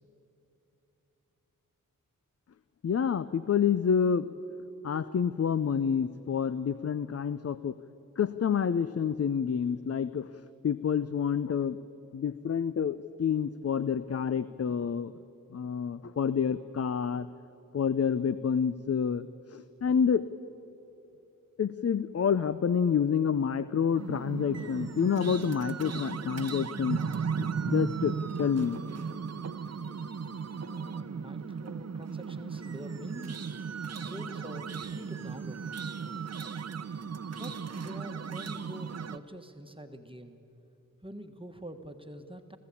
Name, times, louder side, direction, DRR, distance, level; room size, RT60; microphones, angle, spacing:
voice 1, 2.8-4.3 4.8-7.8 8.2-10.3 10.6-11.8 12.1-15.1 15.5-17.3 17.7-20.2 21.6-27.0 27.4-28.8, left 7 dB, 45° left, 14 dB, 0.6 m, -28 dB
sound 1, 23.9-39.2, right 6 dB, 50° right, 0.8 m, -36 dB
voice 2, 30.5-33.4 34.0-35.7 36.9-40.4 41.0-42.6, right 1 dB, 15° right, 5 dB, 1.4 m, -45 dB
26.5 x 15.0 x 8.5 m, 2.9 s
cardioid pair, 60°, 34 cm